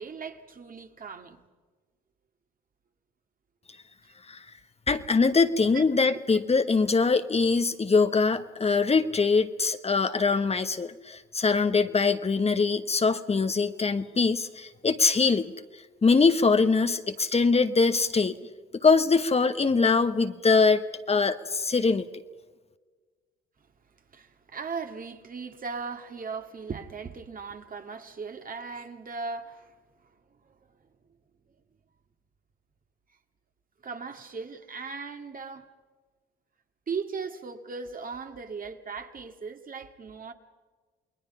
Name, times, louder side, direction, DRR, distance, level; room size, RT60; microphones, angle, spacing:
voice 1, 0.0-1.4 5.2-5.3 5.7-5.8 6.1-6.2 24.1-29.7 33.8-35.7 36.9-40.3, right 5 dB, 45° right, 2.1 m, -38 dB
voice 2, 4.9-15.5 16.0-18.4 18.7-22.1, left 4 dB, 30° left, 1.2 m, -23 dB
29.0 x 20.5 x 5.5 m
supercardioid pair, 60°, 21 cm